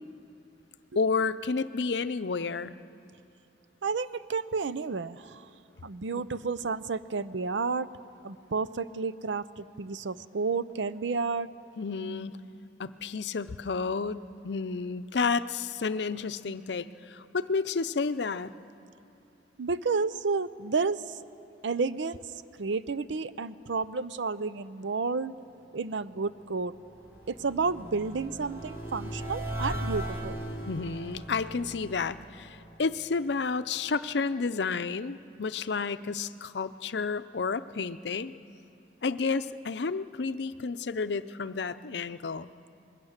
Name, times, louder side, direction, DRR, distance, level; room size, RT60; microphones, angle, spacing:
voice 1, 1.0-2.7 6.1-6.2 11.8-12.4 12.8-18.5 30.7-38.3 39.0-42.5, left 4 dB, 75° left, 12 dB, 0.6 m, -31 dB
voice 2, 3.8-5.5 5.8-7.9 8.2-11.5 19.6-21.2 21.6-22.2 22.6-25.3 25.7-26.7 27.3-30.4, right 4 dB, 85° right, 15 dB, 0.6 m, -31 dB
sound 1, 26.2-33.3, right 1 dB, 15° right, 3.5 m, -39 dB
26.0 x 21.0 x 6.6 m, 2.6 s
head